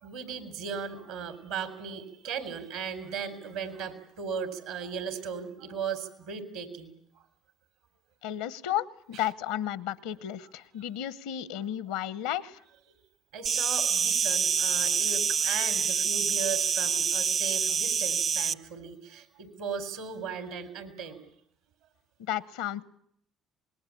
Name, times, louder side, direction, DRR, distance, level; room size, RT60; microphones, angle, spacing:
voice 1, 0.0-6.9 13.3-21.2, right 6 dB, 85° right, 11 dB, 4.0 m, -37 dB
voice 2, 8.2-12.6 22.2-22.8, left 11 dB, 85° left, 19 dB, 1.0 m, -33 dB
Insect, 13.5-18.5, right 6 dB, 50° right, 1.0 m, -26 dB
26.0 x 20.5 x 8.6 m, 0.70 s
supercardioid pair, 70°, 0 cm